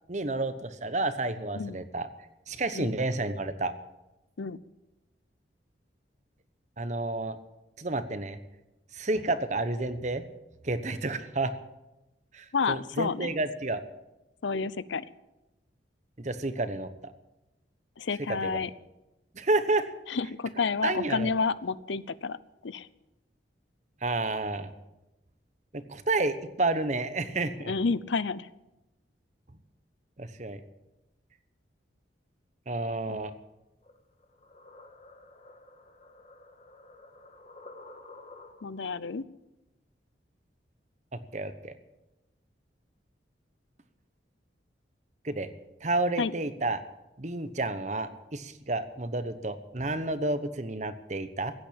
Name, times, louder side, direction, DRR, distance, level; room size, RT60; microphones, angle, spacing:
voice 1, 0.1-2.1 2.5-3.7 6.8-7.4 7.8-8.4 8.9-10.2 10.6-11.5 12.3-13.8 16.2-17.1 18.3-18.6 19.3-19.9 20.8-21.3 24.0-24.7 25.7-27.7 30.2-30.6 32.7-33.3 41.3-41.7 45.2-45.5 45.8-46.8 47.2-51.5, right 2 dB, 40° right, 11 dB, 1.0 m, -30 dB
voice 2, 12.5-13.3 14.4-15.0 18.0-18.7 20.1-22.4 22.6-22.9 27.6-28.5 33.1-33.2 38.6-39.3 46.2-46.3, left 4 dB, 80° left, 18 dB, 0.6 m, -30 dB
sound 1, 33.8-38.9, left 2 dB, 35° left, 1.6 m, -51 dB
16.0 x 9.3 x 8.7 m, 0.97 s
head